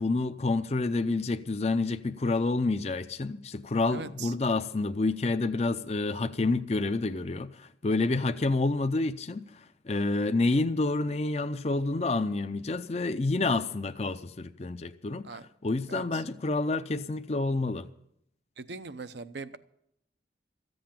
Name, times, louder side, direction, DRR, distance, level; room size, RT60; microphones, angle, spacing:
voice 1, 0.0-17.9, left 3 dB, 35° left, 0.5 m, -28 dB
voice 2, 3.9-4.4 15.2-15.5 15.9-16.2 18.6-19.6, right 4 dB, 70° right, 0.7 m, -41 dB
14.5 x 7.9 x 8.7 m
head